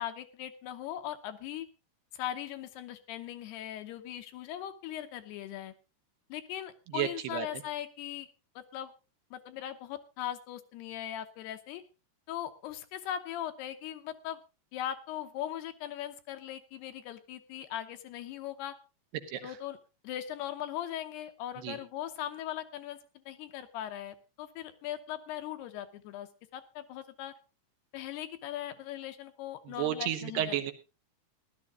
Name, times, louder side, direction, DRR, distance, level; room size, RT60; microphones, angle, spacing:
voice 1, 0.0-1.7 2.1-5.7 6.3-8.3 8.6-8.9 9.3-11.8 12.3-14.4 14.7-18.8 19.4-19.8 20.0-23.0 23.3-27.4 27.9-30.6, left 11 dB, 75° left, 8 dB, 2.8 m, -39 dB
voice 2, 6.9-7.5 19.3-19.5 21.6-21.8 29.8-30.7, right 11 dB, 75° right, 7 dB, 3.1 m, -32 dB
16.0 x 12.0 x 3.7 m, 0.29 s
omnidirectional pair, 5.0 m